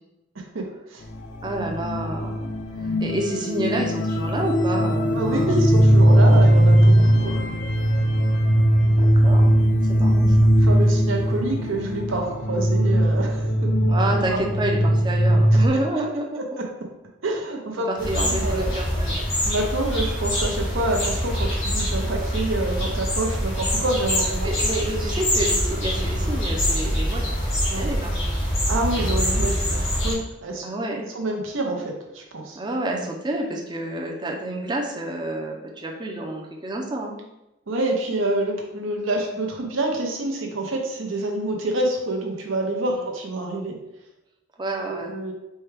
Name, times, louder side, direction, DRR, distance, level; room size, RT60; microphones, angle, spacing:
sound 1, 1.0-15.7, equal, 60° left, 0.5 m, -19 dB
voice 1, 1.4-2.4 2.8-5.7 7.1-7.4 9.0-9.6 9.8-10.5 13.9-16.4 17.8-19.2 24.4-28.1 30.6-31.1 32.5-37.1 42.9-43.0 44.6-45.1, right 1 dB, 20° right, 0 dB, 0.5 m, -29 dB
voice 2, 5.1-7.4 10.6-13.7 14.3-14.4 17.2-18.7 19.4-24.5 27.7-27.9 28.7-30.6 31.1-32.6 37.7-43.7 44.9-45.3, right 2 dB, 80° right, 1 dB, 0.8 m, -27 dB
sound 2, 18.0-30.1, equal, 85° left, 1.4 m, -24 dB
4.4 x 2.2 x 3.2 m, 0.94 s
head